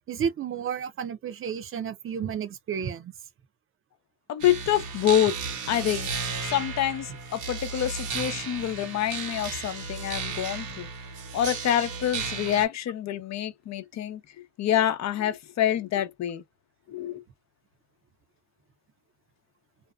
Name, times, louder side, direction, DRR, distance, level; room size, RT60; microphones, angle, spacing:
voice 1, 0.1-3.1, right 7 dB, 45° right, 0.6 m, -31 dB
voice 2, 4.3-5.4 5.7-6.1 6.5-10.9 11.3-14.2 14.6-16.4 16.9-17.2, left 11 dB, 60° left, 0.7 m, -26 dB
sound 1, 4.4-12.6, right 5 dB, 85° right, 1.1 m, -34 dB
2.6 x 2.2 x 2.3 m
cardioid pair, 90°, 30 cm